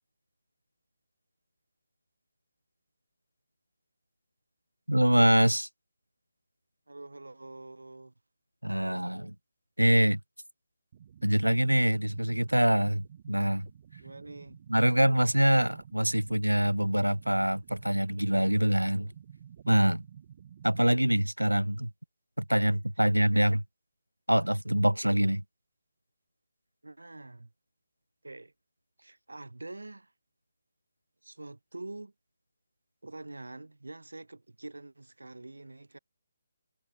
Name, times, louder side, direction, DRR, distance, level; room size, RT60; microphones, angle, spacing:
voice 1, 4.9-5.7 8.6-9.3 9.8-10.2 11.2-13.7 14.7-19.1 19.7-20.0 20.6-21.9 22.4-23.6 24.3-25.4, right 1 dB, 85° right, 0.4 m, -25 dB
voice 2, 6.9-8.1 14.0-14.6 22.6-23.1 23.3-23.5 26.8-27.5 28.2-28.5 29.0-30.1 31.2-32.1 33.0-36.0, right 2 dB, 70° right, 5.5 m, -45 dB
sound 1, 10.9-20.9, right 9 dB, 35° right, 5.4 m, -51 dB
figure-of-eight pair, 145°, 0 cm